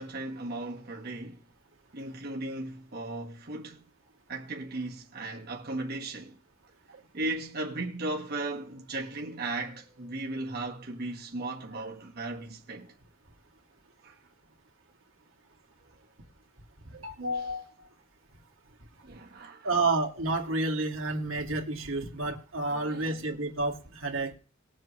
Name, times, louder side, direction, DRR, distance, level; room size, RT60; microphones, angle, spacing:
voice 1, 0.0-1.4 1.9-3.8 4.3-6.4 7.1-12.9 14.0-14.2 19.0-19.8 22.7-23.4, right 2 dB, 55° right, 1.6 m, -36 dB
voice 2, 16.9-17.6 19.6-24.4, right 2 dB, 85° right, 2.3 m, -30 dB
20.5 x 7.5 x 3.3 m
head